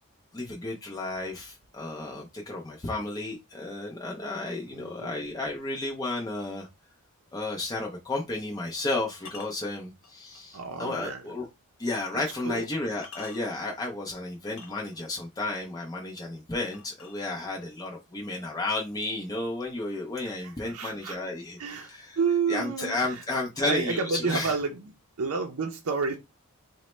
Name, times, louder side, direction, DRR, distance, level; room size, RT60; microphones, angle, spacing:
voice 1, 0.3-6.7 7.3-11.5 11.8-22.2 22.5-24.5, left 2 dB, 15° left, 0.5 m, -33 dB
voice 2, 4.7-5.1 10.5-11.2 12.1-12.7 20.2-21.2 21.6-21.9 22.2-23.2 23.6-24.9 25.2-26.2, right 5 dB, 75° right, 0.5 m, -30 dB
sound 1, 9.2-10.6 11.1-11.2 12.1-12.2 12.7-13.7 14.4-15.2 16.7-17.7 18.6-18.7 19.1-19.5 19.8-20.8, left 5 dB, 60° left, 0.8 m, -49 dB
3.9 x 2.1 x 3.1 m
head